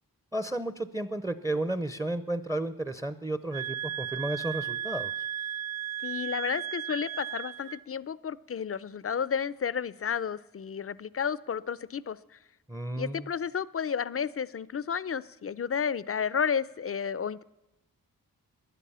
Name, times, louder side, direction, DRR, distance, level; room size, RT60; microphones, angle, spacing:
voice 1, 0.3-5.3 12.7-13.3, right 1 dB, 10° right, 12 dB, 0.7 m, -33 dB
sound 1, 3.5-7.8, right 10 dB, 45° right, 0.5 m, -35 dB
voice 2, 6.0-12.4 13.0-17.4, left 7 dB, 40° left, 18 dB, 0.6 m, -32 dB
16.0 x 11.0 x 5.6 m, 0.98 s
cardioid pair, 60°, 37 cm